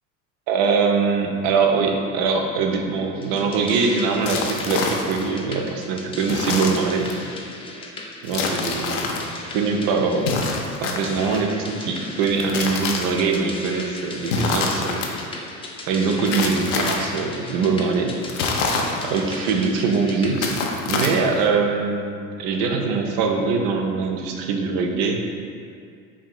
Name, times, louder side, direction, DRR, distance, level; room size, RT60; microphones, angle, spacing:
voice 1, 0.5-7.1 8.2-9.1 9.5-10.4 10.8-15.1 15.9-18.1 19.0-20.5 20.9-25.2, right 4 dB, 65° right, 2 dB, 0.6 m, -22 dB
sound 1, 3.1-20.3, left 2 dB, 15° left, 0.4 m, -36 dB
sound 2, 4.2-5.3 6.3-7.2 8.3-9.2 10.2-11.4 12.2-13.4 14.2-15.1 16.3-17.2 18.2-19.4 20.3-21.5, left 4 dB, 65° left, 0.6 m, -26 dB
4.9 x 2.7 x 2.3 m, 2.3 s
hypercardioid pair, 75°, 40 cm